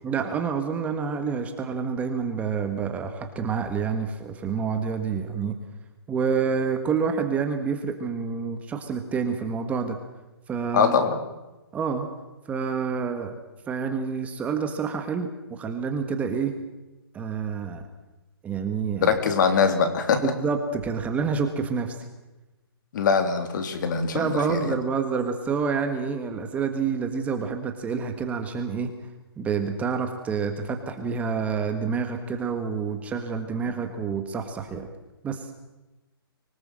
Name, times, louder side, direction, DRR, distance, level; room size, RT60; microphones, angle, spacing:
voice 1, 0.0-5.5 6.1-10.0 10.5-10.9 11.7-12.1 12.5-13.3 13.7-16.5 17.1-17.8 18.4-19.2 20.2-22.0 24.1-28.9 29.4-34.9 35.2-35.5, right 6 dB, 10° right, 6 dB, 1.5 m, -28 dB
voice 2, 10.7-11.2 19.0-20.3 22.9-24.7, left 6 dB, 50° left, 8 dB, 3.4 m, -22 dB
25.0 x 18.5 x 7.7 m, 1.1 s
hypercardioid pair, 155°, 13 cm